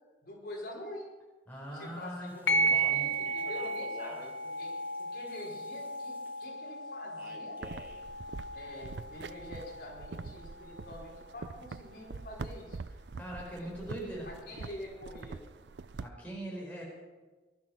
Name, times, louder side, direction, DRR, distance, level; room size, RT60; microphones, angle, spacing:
voice 1, 0.2-1.1 1.7-7.6 8.5-12.8 13.6-13.9 14.2-15.4, left 1 dB, 60° left, -2 dB, 5.1 m, -46 dB
voice 2, 1.5-3.1 13.1-14.3 16.0-16.8, right 1 dB, 10° left, -4 dB, 4.8 m, -41 dB
Speech, 2.3-6.4 7.2-8.0, equal, 10° right, 1.9 m, -51 dB
sound 1, 2.5-11.5, right 2 dB, 90° left, 1.2 m, -35 dB
sound 2, 7.6-16.1, right 4 dB, 80° right, 0.5 m, -44 dB
19.5 x 12.5 x 6.0 m, 1.2 s
head